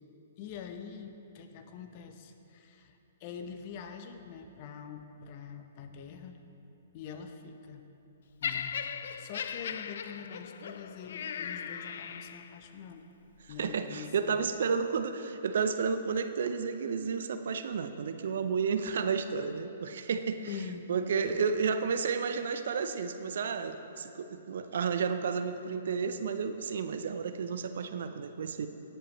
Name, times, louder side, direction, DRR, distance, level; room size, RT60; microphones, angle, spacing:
voice 1, 0.4-6.4 6.9-7.8 8.4-13.0 13.5-14.4 20.5-20.9 21.2-21.5, left 7 dB, 40° left, 6 dB, 0.9 m, -45 dB
Laughter, 8.4-12.7 13.5-13.6, left 7 dB, 60° left, 0.4 m, -38 dB
voice 2, 13.6-20.4 20.9-28.7, right 5 dB, 60° right, 9 dB, 0.6 m, -31 dB
18.0 x 7.8 x 3.1 m, 2.8 s
figure-of-eight pair, 120°, 0 cm